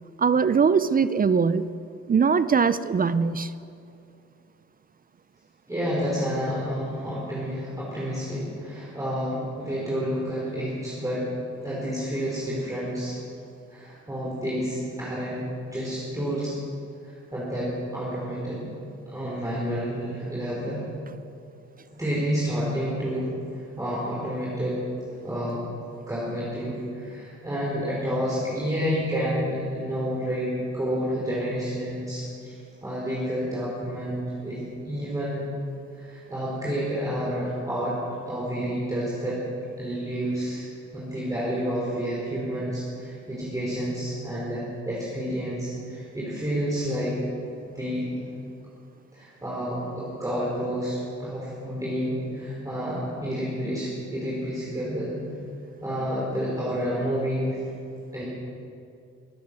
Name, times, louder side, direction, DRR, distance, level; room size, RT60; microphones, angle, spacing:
voice 1, 0.2-1.7 2.1-3.5, right 6 dB, 30° right, 15 dB, 0.5 m, -21 dB
voice 2, 5.7-11.3 11.6-13.2 13.7-16.5 17.0-18.6 19.1-20.8 21.9-23.3 23.5-24.8 25.2-25.6 26.1-32.5 32.8-35.4 35.9-38.0 38.3-39.4 39.8-40.7 40.9-47.1 47.7-48.1 49.1-55.1 55.8-57.6 58.1-58.2, equal, 10° right, -7 dB, 4.5 m, -29 dB
21.5 x 9.4 x 6.1 m, 2.5 s
cardioid pair, 90°, 30 cm